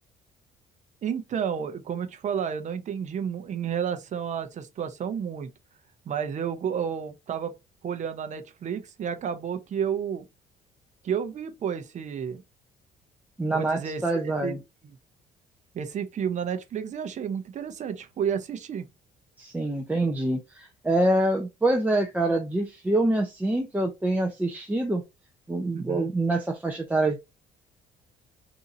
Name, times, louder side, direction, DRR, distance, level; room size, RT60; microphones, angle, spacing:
voice 1, 1.0-5.5 6.1-7.5 7.8-10.2 11.0-12.4 13.5-14.6 14.8-15.0 15.7-18.9 25.7-26.1, right 7 dB, 45° right, 0.7 m, -31 dB
voice 2, 13.4-14.6 19.4-25.0 25.5-27.2, right 2 dB, 10° right, 0.6 m, -25 dB
3.9 x 2.7 x 2.7 m
cardioid pair, 110°, 17 cm